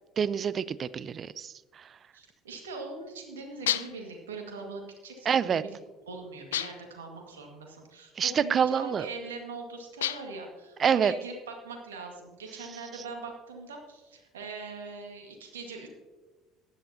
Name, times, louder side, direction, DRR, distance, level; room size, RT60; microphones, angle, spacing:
voice 1, 0.2-1.5 5.3-5.6 8.2-9.0 10.8-11.1, right 7 dB, 40° right, 18 dB, 0.5 m, -26 dB
voice 2, 2.1-5.8 6.1-15.9, right 3 dB, 80° right, 2 dB, 2.0 m, -41 dB
sound 1, 3.7-4.1 6.5-7.0 10.0-10.5, left 12 dB, 80° left, 0.3 m, -31 dB
15.5 x 11.0 x 2.9 m, 1.2 s
figure-of-eight pair, 60°, 0 cm